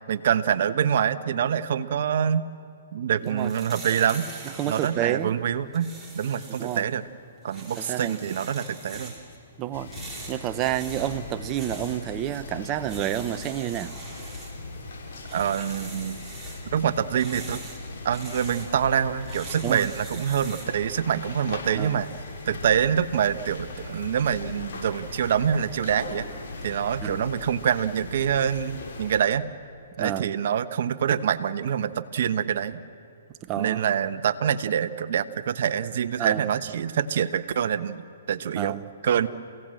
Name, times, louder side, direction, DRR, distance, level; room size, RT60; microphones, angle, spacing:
voice 1, 0.1-2.5 2.9-4.3 4.7-7.0 7.4-9.1 15.3-16.2 16.7-17.6 18.0-22.1 22.5-26.3 26.6-29.5 30.0-32.8 33.6-38.8 39.0-39.3, right 8 dB, 60° right, 11 dB, 1.1 m, -25 dB
sound 1, 3.2-20.8, right 3 dB, 5° right, 4.5 m, -44 dB
voice 2, 4.6-5.3 6.6-6.9 7.8-8.2 9.6-9.9 10.3-13.9 19.6-19.9 21.8-22.0 27.0-27.2 30.0-30.3 33.4-33.8 36.2-36.5 38.6-38.9, right 12 dB, 25° right, 11 dB, 0.9 m, -29 dB
sound 2, 9.7-29.2, left 3 dB, 60° left, 6.5 m, -39 dB
29.5 x 17.0 x 7.8 m, 2.5 s
hypercardioid pair, 140°, 0 cm